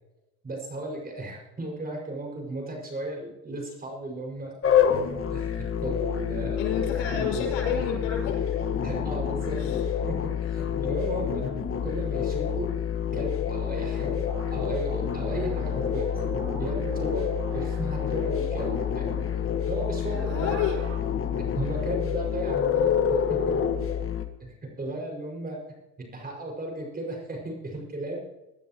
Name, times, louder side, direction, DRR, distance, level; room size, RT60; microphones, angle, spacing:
voice 1, 0.4-4.5 5.3-6.6 7.2-7.3 8.8-9.8 10.1-11.5 11.8-12.7 13.1-16.2 16.6-19.2 19.7-20.5 21.5-23.6 24.4-25.6 26.1-28.2, right 2 dB, 25° right, 0 dB, 5.9 m, -35 dB
sound 1, 4.6-24.3, left 8 dB, 40° left, 1.6 m, -27 dB
voice 2, 6.6-8.8 9.5-9.8 10.5-10.7 20.0-20.8, left 7 dB, 85° left, -1 dB, 6.5 m, -31 dB
sound 2, 14.3-21.0, right 6 dB, 80° right, 3.5 m, -40 dB
22.0 x 12.5 x 3.1 m, 0.99 s
supercardioid pair, 95°, 34 cm